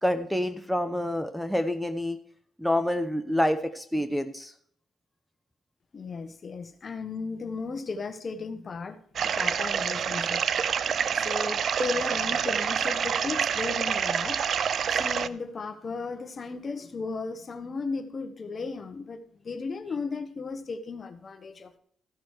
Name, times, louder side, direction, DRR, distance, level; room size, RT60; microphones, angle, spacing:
voice 1, 0.0-2.2 2.6-4.5, left 1 dB, ahead, 10 dB, 0.8 m, -27 dB
voice 2, 5.9-10.4 11.1-14.4 14.9-21.8, left 4 dB, 40° left, 10 dB, 1.2 m, -35 dB
sound 1, 9.2-15.3, right 7 dB, 55° right, 0.5 m, -27 dB
14.5 x 6.2 x 4.8 m, 0.63 s
cardioid pair, 90°, 0 cm